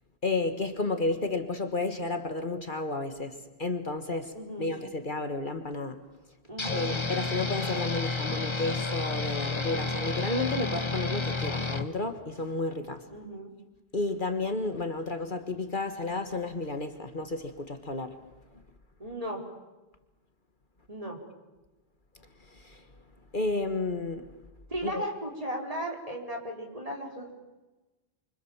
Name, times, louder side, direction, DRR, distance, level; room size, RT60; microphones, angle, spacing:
voice 1, 0.2-4.3 4.6-6.0 6.7-13.0 13.9-18.2 22.5-22.8 23.3-24.2 24.8-25.0, left 3 dB, 50° left, 1.9 m, -32 dB
voice 2, 4.3-4.7 6.5-6.9 13.1-13.5 19.0-19.4 20.9-21.2 24.7-27.3, equal, 35° right, 5.0 m, -36 dB
sound 1, 6.6-11.9, left 3 dB, 25° left, 1.3 m, -31 dB
30.0 x 25.0 x 7.4 m
omnidirectional pair, 1.1 m